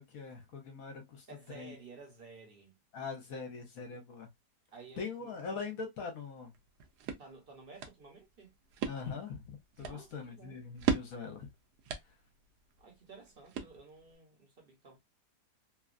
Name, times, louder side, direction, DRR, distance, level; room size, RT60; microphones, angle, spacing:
voice 1, 0.0-1.2 1.5-1.7 2.9-4.3 5.0-6.5 8.9-11.5, left 5 dB, 65° left, 1.1 m, -42 dB
voice 2, 1.3-2.8 4.7-5.3 7.2-8.5 9.8-10.7 12.8-15.0, right 4 dB, 40° right, 0.9 m, -53 dB
sound 1, 6.5-14.2, right 7 dB, 80° right, 1.1 m, -40 dB
3.0 x 2.3 x 2.3 m
omnidirectional pair, 1.7 m